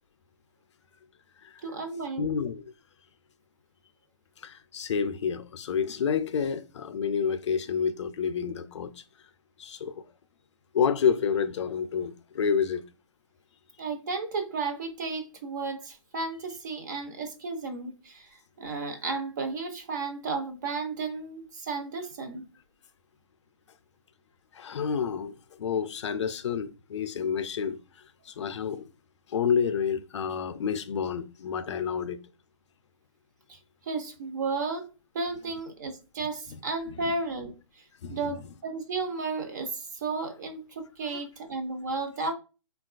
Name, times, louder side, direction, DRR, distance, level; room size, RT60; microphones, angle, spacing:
voice 1, 1.6-2.3 13.8-22.5 33.5-34.9 35.1-37.8 38.1-42.3, right 4 dB, 35° right, 0.5 m, -33 dB
voice 2, 2.2-2.6 4.4-8.9 9.6-10.0 10.7-12.8 24.5-27.8 28.3-28.9 29.3-32.2 36.5-36.6 38.0-38.4 41.1-41.2, left 7 dB, 60° left, 0.4 m, -29 dB
3.7 x 2.3 x 2.3 m
hypercardioid pair, 160°, 17 cm